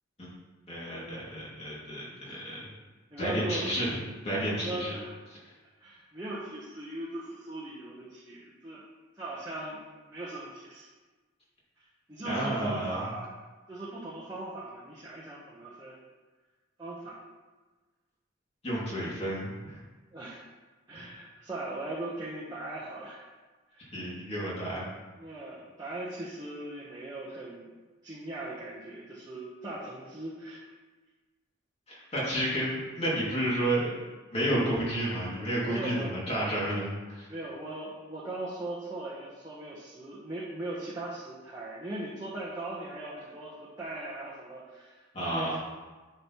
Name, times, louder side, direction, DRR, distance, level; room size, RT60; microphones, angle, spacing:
voice 1, 0.7-2.7 3.2-3.9 4.2-5.0 12.2-13.1 18.6-19.8 20.9-21.1 23.9-24.9 31.9-33.9 34.3-37.3 45.1-45.6, right 1 dB, 30° left, -6 dB, 2.5 m, -31 dB
voice 2, 3.1-3.7 4.5-5.2 5.8-8.8 9.1-9.8 10.1-10.9 11.8-13.3 13.7-16.0 16.8-17.2 20.1-20.4 20.9-23.2 23.7-23.9 25.2-27.8 28.0-30.6 32.0-32.1 35.7-36.2 37.3-45.6, right 2 dB, 20° right, -8 dB, 1.0 m, -39 dB
10.0 x 6.0 x 3.1 m, 1.3 s
head